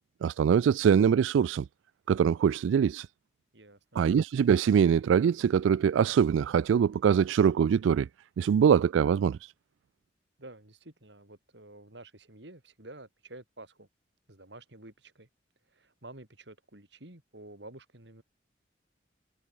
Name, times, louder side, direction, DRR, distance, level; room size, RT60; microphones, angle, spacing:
voice 1, 0.2-1.7 2.1-3.1 4.0-8.1 8.4-9.5, right 7 dB, 85° right, 0.3 m, -23 dB
voice 2, 3.5-4.0 10.4-13.9 14.3-15.3 15.7-18.2, right 2 dB, 65° right, 4.0 m, -50 dB
head